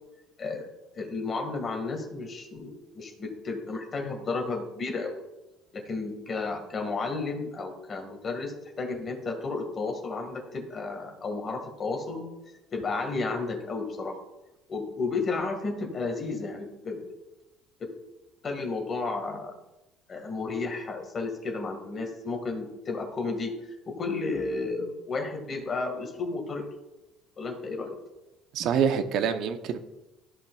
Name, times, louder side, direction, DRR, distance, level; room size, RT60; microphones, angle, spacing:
voice 1, 0.9-5.2 5.7-12.2 12.7-14.2 14.7-17.0 17.8-17.9 18.4-19.6 20.1-26.6 27.4-27.9, left 3 dB, 35° left, 2 dB, 1.8 m, -32 dB
voice 2, 28.5-29.8, right 7 dB, 65° right, 9 dB, 0.8 m, -26 dB
13.5 x 5.6 x 2.4 m, 0.96 s
cardioid pair, 105°, 0 cm